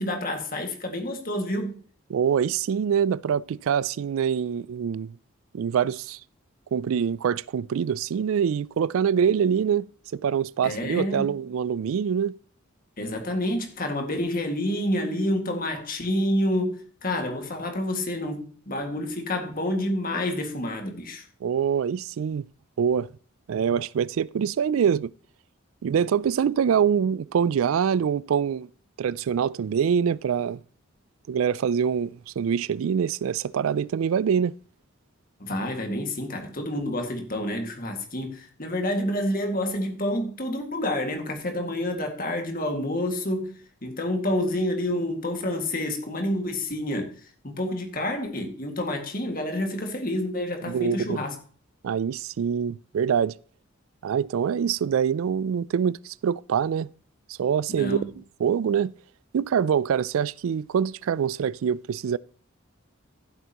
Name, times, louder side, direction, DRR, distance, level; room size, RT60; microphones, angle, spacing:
voice 1, 0.0-1.8 10.6-11.3 13.0-21.3 35.4-43.5 43.8-47.1 47.4-51.4 57.7-58.1, left 1 dB, 40° left, 2.0 m, -28 dB
voice 2, 2.1-5.2 5.5-6.2 6.7-9.9 10.1-12.3 21.4-22.5 22.8-23.1 23.5-25.1 25.8-28.7 29.0-30.6 31.3-34.5 50.6-51.2 51.8-53.3 54.0-56.9 57.3-58.9 59.3-62.2, right 7 dB, 75° right, 0.3 m, -25 dB
15.0 x 7.9 x 3.0 m
head